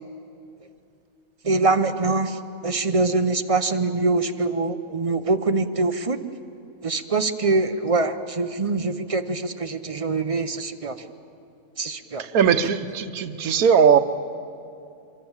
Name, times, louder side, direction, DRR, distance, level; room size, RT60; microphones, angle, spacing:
voice 1, 1.4-2.4 2.6-6.2 6.8-10.9 11.8-12.3, right 3 dB, 30° right, 8 dB, 0.7 m, -24 dB
voice 2, 12.2-14.0, right 7 dB, 85° right, 9 dB, 1.3 m, -19 dB
24.5 x 23.5 x 7.3 m, 2.6 s
omnidirectional pair, 1.5 m